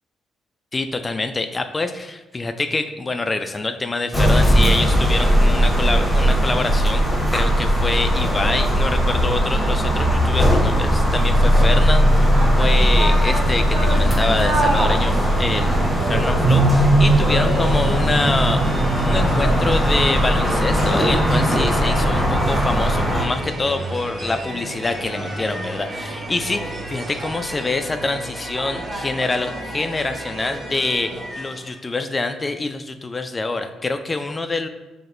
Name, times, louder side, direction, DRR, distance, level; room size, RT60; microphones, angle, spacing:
voice 1, 0.7-7.0 7.3-12.3 12.6-34.7, left 3 dB, 25° left, 8 dB, 0.3 m, -26 dB
sound 1, 4.1-23.3, equal, 10° left, 1.1 m, -18 dB
sound 2, 12.0-31.8, right 1 dB, 55° right, 1.0 m, -30 dB
5.8 x 2.8 x 2.6 m, 1.1 s
cardioid pair, 90°, 0 cm